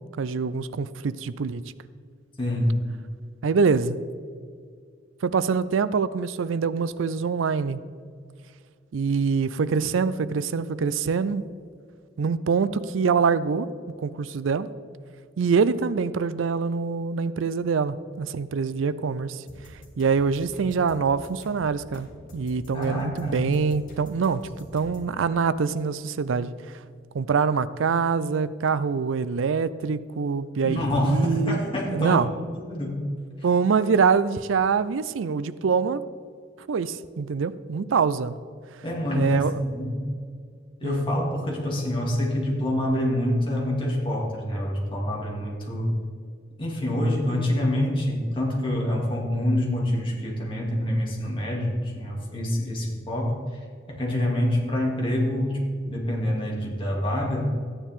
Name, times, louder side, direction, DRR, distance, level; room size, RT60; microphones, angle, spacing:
voice 1, 0.2-1.6 3.4-4.0 5.2-7.8 8.9-11.4 12.2-13.7 14.0-14.7 15.4-19.4 20.0-22.1 22.3-26.5 27.1-31.6 31.9-32.3 33.4-36.0 36.7-38.4 39.1-39.5 40.8-41.1, right 5 dB, 85° right, 16 dB, 0.4 m, -24 dB
voice 2, 2.4-2.8 22.7-23.4 30.6-32.2 32.5-33.1 33.4-33.5 38.8-40.0 40.8-45.9 46.6-55.6 55.9-57.5, left 1 dB, 25° left, -3 dB, 2.6 m, -26 dB
sound 1, 19.5-25.1, left 1 dB, 45° left, 3.2 m, -46 dB
14.0 x 9.9 x 3.7 m, 2.1 s
head